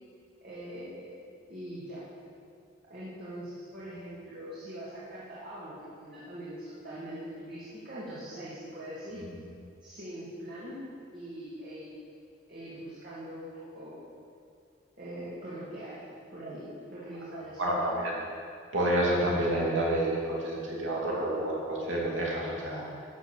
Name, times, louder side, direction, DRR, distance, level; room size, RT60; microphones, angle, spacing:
voice 1, 0.4-1.2 1.5-2.1 2.9-9.2 9.8-10.9 11.1-11.9 12.5-14.0 15.0-18.0, right 1 dB, 45° right, -10 dB, 2.6 m, -42 dB
voice 2, 17.6-18.1 18.7-23.0, right 1 dB, 85° right, -4 dB, 2.8 m, -29 dB
12.5 x 6.6 x 7.4 m, 2.3 s
head